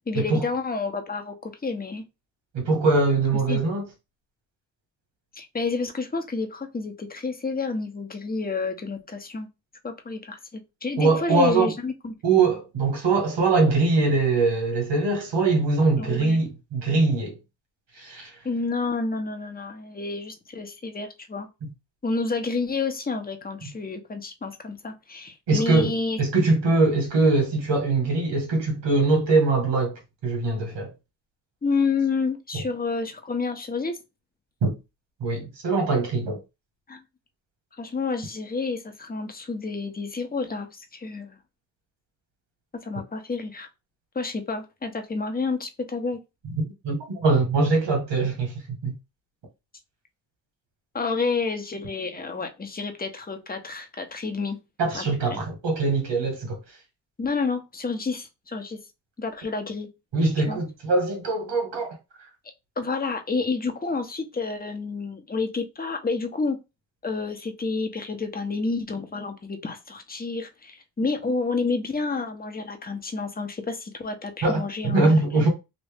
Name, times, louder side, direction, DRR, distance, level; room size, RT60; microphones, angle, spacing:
voice 1, 0.1-2.0 3.5-3.6 5.4-9.5 9.8-12.1 16.0-16.4 18.4-21.5 22.0-26.2 31.6-34.0 36.9-37.0 37.8-41.4 42.8-43.7 44.1-46.2 50.9-54.6 54.9-55.4 57.2-58.8 59.2-59.9 60.5-60.6 62.8-66.6 67.0-75.5, left 4 dB, 20° left, 0.9 m, -29 dB
voice 2, 2.5-3.9 11.0-11.7 12.2-17.4 18.0-18.3 21.6-21.7 25.5-30.9 32.5-32.6 34.6-34.7 35.2-36.4 46.5-48.9 54.8-56.6 60.1-62.0 74.4-75.5, right 3 dB, 85° right, 1.6 m, -22 dB
3.0 x 2.7 x 3.4 m
cardioid pair, 75°, 42 cm